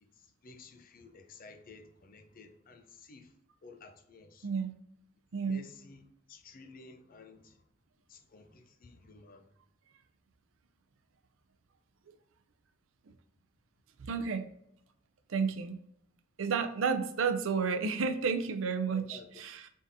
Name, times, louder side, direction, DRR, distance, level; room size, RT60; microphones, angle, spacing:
voice 1, 0.0-3.3 3.6-4.5 5.5-7.6 8.1-9.5 18.9-19.3, left 3 dB, 45° left, 0.5 m, -53 dB
voice 2, 4.4-4.8 5.3-5.7 13.0-13.1 14.0-14.5 15.3-15.8 16.4-19.7, right 5 dB, 75° right, 0.5 m, -31 dB
3.8 x 3.6 x 2.7 m
head